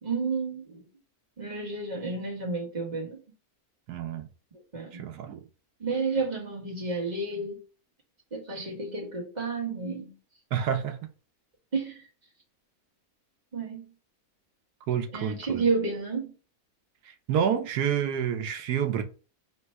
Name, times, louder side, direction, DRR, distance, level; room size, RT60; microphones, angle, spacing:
voice 1, 0.0-0.9 1.4-3.2 4.7-5.0 5.8-7.6 8.3-10.2 11.7-12.1 13.5-13.9 15.1-16.3, right 4 dB, 30° right, 1.5 m, -31 dB
voice 2, 3.9-4.3 4.9-5.4 10.5-11.0 14.9-15.6 17.3-19.0, right 8 dB, 85° right, 1.2 m, -28 dB
3.3 x 2.9 x 4.4 m
omnidirectional pair, 1.6 m